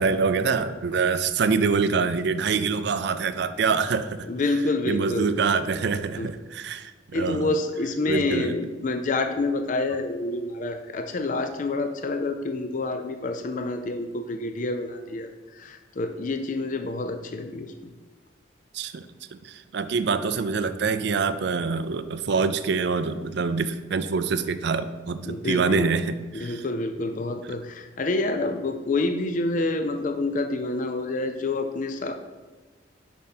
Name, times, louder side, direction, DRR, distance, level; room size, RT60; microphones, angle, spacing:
voice 1, 0.0-4.3 4.9-7.5 8.1-8.5 18.7-19.1 19.3-26.6, right 5 dB, 60° right, 11 dB, 0.4 m, -25 dB
voice 2, 4.2-5.3 6.2-6.3 7.1-17.9 25.2-26.0 26.3-32.1, left 2 dB, 40° left, 6 dB, 0.4 m, -28 dB
7.1 x 5.3 x 4.3 m, 1.3 s
head